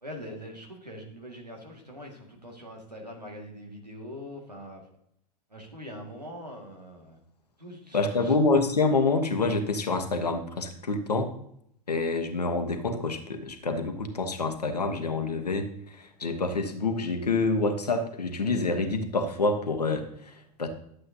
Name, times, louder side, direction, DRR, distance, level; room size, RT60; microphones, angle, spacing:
voice 1, 0.0-4.8 5.5-7.2 7.6-8.4, equal, 90° right, 0 dB, 1.9 m, -43 dB
voice 2, 7.9-11.3 11.9-20.7, left 3 dB, 80° left, 7 dB, 1.2 m, -27 dB
11.5 x 7.7 x 2.8 m, 0.70 s
figure-of-eight pair, 85°, 20 cm